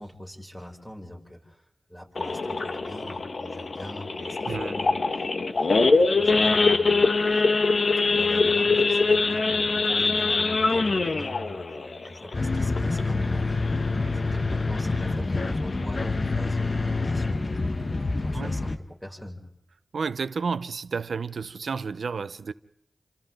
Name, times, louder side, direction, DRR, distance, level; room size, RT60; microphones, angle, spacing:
voice 1, 0.0-1.6 1.9-7.4 7.9-17.7 18.2-19.5, left 1 dB, 5° left, 7.2 m, -42 dB
Idling / Accelerating revving vroom / Sawing, 2.2-13.2 13.6-13.8 14.1-14.2 14.7-14.9 15.4-15.5 15.7-16.1, left 3 dB, 70° left, 1.6 m, -23 dB
sound 1, 12.3-18.8, left 3 dB, 55° left, 1.5 m, -27 dB
voice 2, 19.9-22.5, right 5 dB, 90° right, 0.8 m, -31 dB
30.0 x 27.0 x 3.9 m
cardioid pair, 45°, 0 cm